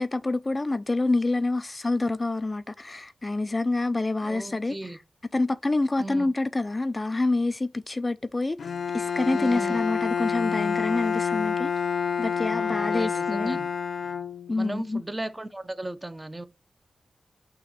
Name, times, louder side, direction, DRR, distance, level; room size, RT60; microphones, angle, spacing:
voice 1, 0.0-4.8 5.3-11.7 12.2-13.6 14.5-15.0, left 2 dB, 25° left, 0.4 m, -27 dB
voice 2, 4.2-5.0 6.0-6.3 9.3-9.8 12.5-13.7 14.6-16.5, right 1 dB, 20° right, 0.7 m, -36 dB
Bowed string instrument, 8.6-14.8, left 6 dB, 85° left, 0.7 m, -28 dB
5.8 x 3.0 x 5.4 m
wide cardioid pair, 100°, 0 cm